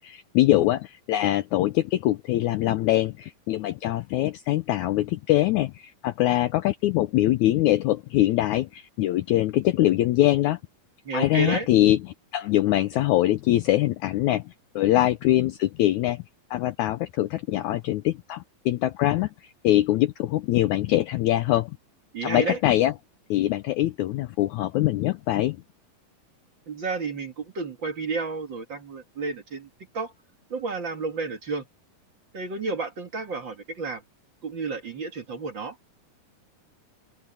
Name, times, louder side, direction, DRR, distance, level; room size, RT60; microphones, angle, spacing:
voice 1, 0.0-10.6 11.1-12.0 12.3-16.2 16.5-19.3 19.6-21.7 22.2-22.9 23.3-25.6, left 15 dB, 85° left, 1.6 m, -23 dB
voice 2, 11.1-11.7 22.1-22.6 26.7-29.7 29.9-30.1 30.5-31.6 32.3-34.0 34.4-35.8, right 4 dB, 40° right, 2.0 m, -31 dB
open air
omnidirectional pair, 4.2 m